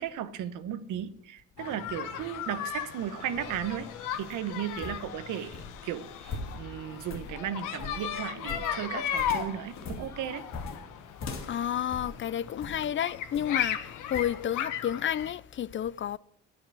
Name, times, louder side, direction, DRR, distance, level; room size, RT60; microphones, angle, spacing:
voice 1, 0.0-3.9 4.2-5.6 5.8-10.4, right 10 dB, 85° right, 1.0 m, -35 dB
sound 1, 1.6-15.3, left 9 dB, 90° left, 1.2 m, -36 dB
sound 2, 3.2-12.9 13.3-13.7 14.1-14.4, left 4 dB, 65° left, 2.5 m, -42 dB
voice 2, 11.4-16.2, left 10 dB, 40° left, 0.4 m, -31 dB
9.7 x 9.2 x 6.1 m
cardioid pair, 90°, 30 cm